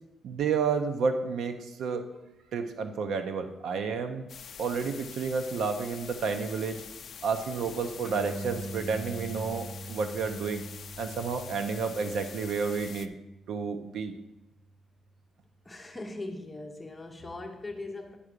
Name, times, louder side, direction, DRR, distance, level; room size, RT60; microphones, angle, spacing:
voice 1, 0.2-2.1 2.5-4.2 4.6-6.8 7.2-10.6 11.0-13.1 13.5-14.1, right 5 dB, 70° right, 7 dB, 0.8 m, -30 dB
sound 1, 4.3-13.1, left 7 dB, 45° left, 0.5 m, -45 dB
sound 2, 8.0-14.9, right 2 dB, 35° right, 2.0 m, -43 dB
voice 2, 15.6-18.2, left 2 dB, 10° left, 2 dB, 0.9 m, -40 dB
10.0 x 4.8 x 6.7 m, 0.93 s
cardioid pair, 165°, 0 cm